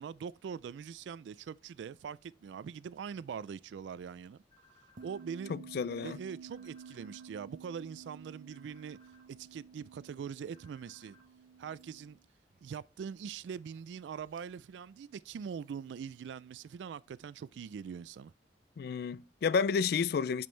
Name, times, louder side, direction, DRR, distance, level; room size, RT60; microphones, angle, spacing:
voice 1, 0.0-4.4 5.0-5.5 6.0-9.0 9.3-11.2 11.6-12.2 12.6-18.3, right 7 dB, 85° right, 0.3 m, -43 dB
sound 1, 4.5-5.3 6.5-7.3 8.5-9.3 10.5-11.3, left 1 dB, 30° left, 4.3 m, -64 dB
sound 2, 5.0-12.2 12.5-12.6 13.4-13.8 14.2-14.4 15.3-15.4, right 6 dB, 50° right, 0.6 m, -52 dB
voice 2, 5.5-6.2 18.8-20.5, left 5 dB, 60° left, 0.3 m, -31 dB
7.7 x 5.4 x 3.2 m
head